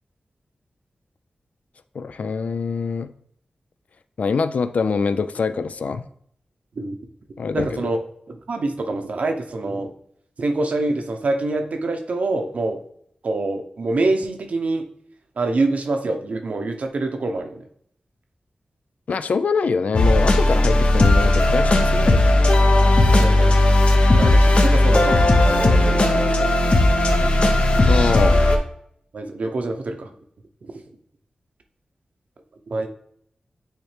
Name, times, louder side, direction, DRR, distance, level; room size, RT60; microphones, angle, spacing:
voice 1, 1.9-3.1 4.2-6.1 7.4-7.9 19.1-22.5 27.8-28.4, left 5 dB, 70° left, 12 dB, 0.4 m, -24 dB
voice 2, 7.5-8.0 8.3-9.9 10.4-12.8 13.2-14.9 15.4-17.6 23.0-23.5 24.1-26.5 29.1-30.1 30.6-30.7 32.7-32.9, right 2 dB, 70° right, 5 dB, 0.8 m, -25 dB
sound 1, 19.9-28.6, left 1 dB, 50° left, 0.8 m, -16 dB
8.9 x 3.2 x 3.3 m, 0.68 s
wide cardioid pair, 85°, 3 cm